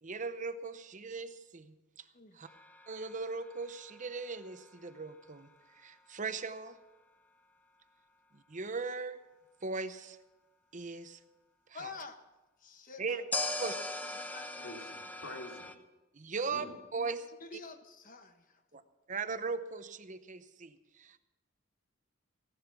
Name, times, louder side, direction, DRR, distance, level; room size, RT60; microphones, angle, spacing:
voice 1, 0.0-2.1 2.3-2.5 2.9-6.8 8.3-9.2 9.6-10.2 10.7-11.2 11.7-11.9 13.0-13.2 13.6-13.7 16.1-16.7 16.9-17.2 18.7-18.8 19.1-21.2, right 4 dB, 40° right, 11 dB, 0.8 m, -39 dB
sound 1, 2.5-5.5 13.3-15.7, left 2 dB, 10° left, 0.9 m, -40 dB
voice 2, 11.7-12.2 12.6-14.8 17.0-18.6, left 4 dB, 40° left, 8 dB, 1.2 m, -49 dB
voice 3, 14.6-15.7 16.5-16.7, left 2 dB, 90° left, 1 dB, 2.8 m, -46 dB
16.0 x 11.5 x 6.0 m, 1.1 s
head